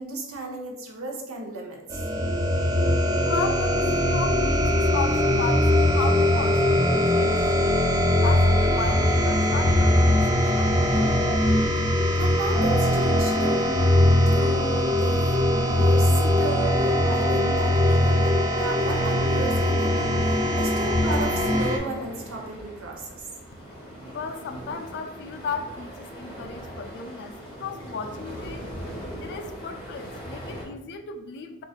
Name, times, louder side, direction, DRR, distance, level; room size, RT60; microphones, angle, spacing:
voice 1, 0.0-2.0 12.2-13.7 14.3-23.2, right 3 dB, 65° right, 0 dB, 0.7 m, -34 dB
sound 1, 1.9-21.8, left 1 dB, 15° right, 0.4 m, -21 dB
voice 2, 3.2-7.8 8.2-11.4 24.1-28.7 29.2-31.6, left 5 dB, 50° left, 7 dB, 0.3 m, -35 dB
sound 2, 18.7-30.6, equal, 25° left, 0.9 m, -40 dB
4.6 x 2.4 x 2.4 m, 0.95 s
head